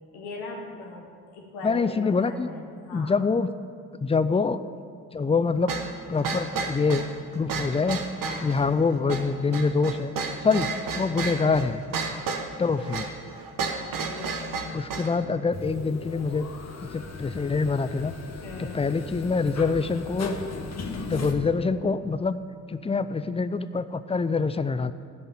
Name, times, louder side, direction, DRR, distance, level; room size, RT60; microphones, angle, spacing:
voice 1, 0.1-3.2 8.2-8.6 10.4-10.6 12.0-12.4 13.7-14.8 18.4-18.8, left 3 dB, 70° left, 1 dB, 1.7 m, -40 dB
voice 2, 1.6-2.5 2.9-3.5 4.0-4.6 5.1-5.8 6.1-7.0 7.3-8.0 8.4-10.1 10.4-10.7 10.9-11.8 12.6-13.1 14.7-16.5 16.8-18.1 18.6-20.4 21.1-22.4 22.7-24.9, left 4 dB, 15° left, 13 dB, 0.5 m, -25 dB
sound 1, 5.7-15.2, right 4 dB, 50° right, 1.4 m, -32 dB
sound 2, 15.5-21.3, left 3 dB, 40° left, 1.5 m, -37 dB
12.5 x 5.5 x 8.8 m, 2.2 s
figure-of-eight pair, 40°, 41 cm